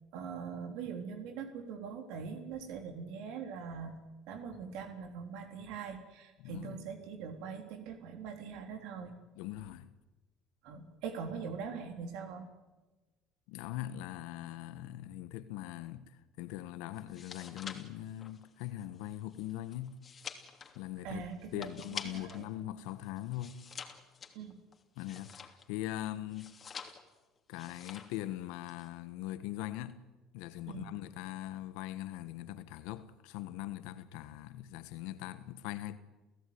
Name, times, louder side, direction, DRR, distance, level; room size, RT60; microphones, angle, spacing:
voice 1, 0.1-4.0 4.3-9.1 10.6-12.5 21.0-21.7 22.0-22.5 24.3-24.6 30.7-30.9, right 6 dB, 75° right, 3.6 m, -42 dB
voice 2, 6.4-6.8 9.3-9.9 13.5-20.0 20.7-21.2 21.5-23.6 25.0-26.6 27.5-30.0 30.3-36.0, left 14 dB, 80° left, 1.5 m, -41 dB
sound 1, 17.0-22.5 22.8-25.8 26.3-27.2 27.5-28.2 28.5-28.9, left 6 dB, 35° left, 3.0 m, -47 dB
30.0 x 16.0 x 9.7 m
supercardioid pair, 95°, 0 cm